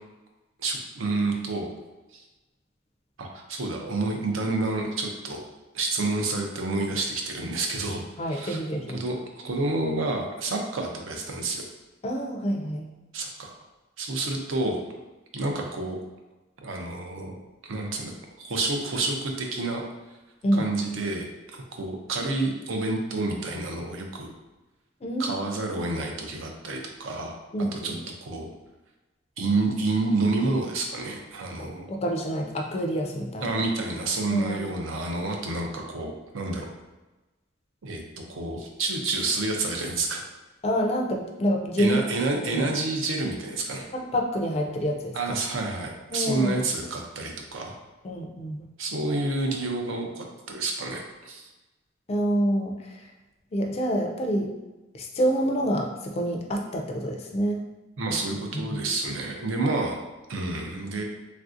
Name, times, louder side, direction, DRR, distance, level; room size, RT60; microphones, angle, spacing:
voice 1, 0.6-1.7 2.1-2.2 3.2-5.4 5.7-8.6 8.9-9.2 9.4-11.7 13.1-13.5 14.0-14.8 15.3-16.0 16.6-17.4 17.6-19.8 20.5-24.3 25.2-27.4 27.7-27.9 28.2-28.5 29.4-31.9 33.4-36.7 37.8-38.0 38.3-40.2 41.8-43.9 45.1-47.8 48.8-51.4 58.0-60.0 60.3-61.0, right 2 dB, 75° right, 2 dB, 0.5 m, -29 dB
voice 2, 8.2-9.0 12.0-12.9 20.4-20.7 25.0-25.5 27.5-28.0 31.6-33.5 34.3-34.7 40.6-42.0 42.5-42.7 43.9-45.3 46.1-46.6 48.0-48.7 52.1-53.1 53.5-54.5 54.9-57.6 58.5-58.9, equal, 30° left, 2 dB, 0.3 m, -27 dB
3.2 x 2.5 x 2.4 m, 1.1 s
head